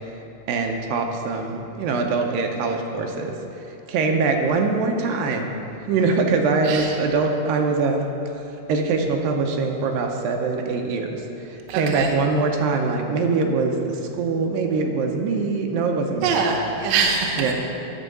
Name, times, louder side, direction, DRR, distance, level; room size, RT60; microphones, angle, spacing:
voice 1, 0.5-3.4 3.7-5.5 5.9-8.1 8.7-16.4 17.4-17.5, right 4 dB, 85° right, 3 dB, 2.5 m, -23 dB
voice 2, 11.7-12.1 16.2-17.5, right 5 dB, 70° right, 0 dB, 1.8 m, -23 dB
11.0 x 4.7 x 6.6 m, 3.0 s
omnidirectional pair, 4.0 m